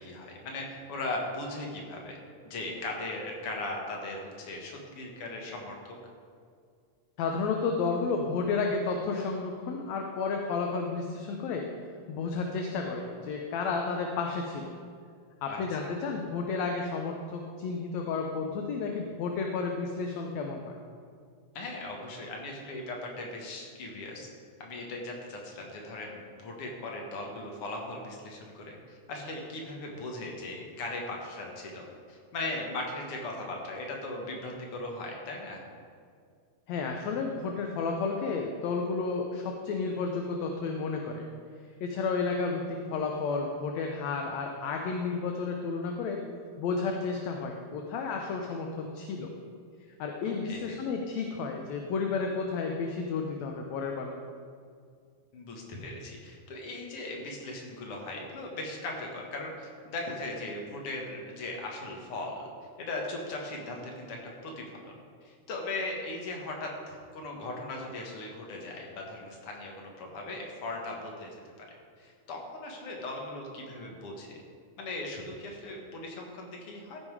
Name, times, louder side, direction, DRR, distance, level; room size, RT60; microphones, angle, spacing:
voice 1, 0.0-2.2 2.5-6.0 15.4-15.8 21.5-24.3 24.6-35.6 50.2-50.8 55.3-62.5 62.8-64.9 65.2-74.4 74.8-77.0, left 2 dB, 55° left, 0 dB, 2.2 m, -38 dB
voice 2, 7.2-11.6 12.1-14.7 15.4-20.8 36.7-41.3 41.8-46.2 46.6-49.3 50.0-54.1, left 4 dB, 75° left, 2 dB, 1.9 m, -32 dB
15.0 x 5.6 x 4.7 m, 2.2 s
omnidirectional pair, 3.4 m